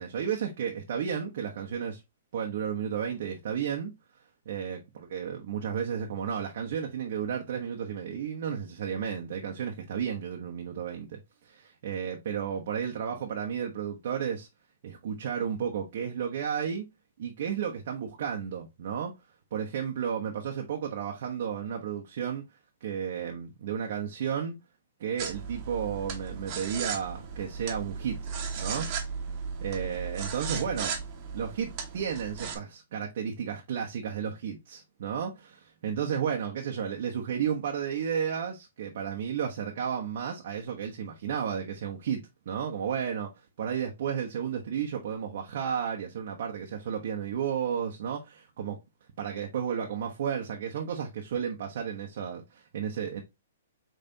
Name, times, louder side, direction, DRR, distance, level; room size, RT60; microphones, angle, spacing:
voice 1, 0.0-2.0 2.3-3.9 4.5-14.5 14.8-16.9 17.2-19.1 19.5-22.4 22.8-24.5 25.0-28.2 28.6-28.9 29.6-30.9 31.3-43.3 43.6-48.8 49.2-53.2, right 8 dB, 60° right, 0.9 m, -33 dB
sound 1, 25.2-32.6, right 6 dB, 35° right, 1.2 m, -36 dB
5.3 x 3.3 x 2.7 m
hypercardioid pair, 140°, 0 cm